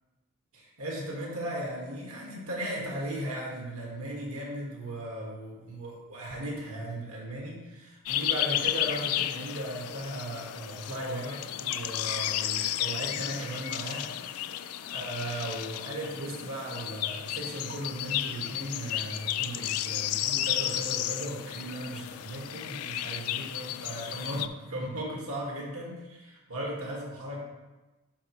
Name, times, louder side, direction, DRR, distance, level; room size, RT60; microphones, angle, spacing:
voice 1, 0.5-27.4, right 1 dB, 85° right, -3 dB, 1.8 m, -37 dB
sound 1, 8.1-24.5, left 12 dB, 90° left, 0.4 m, -33 dB
11.5 x 4.7 x 3.2 m, 1.1 s
head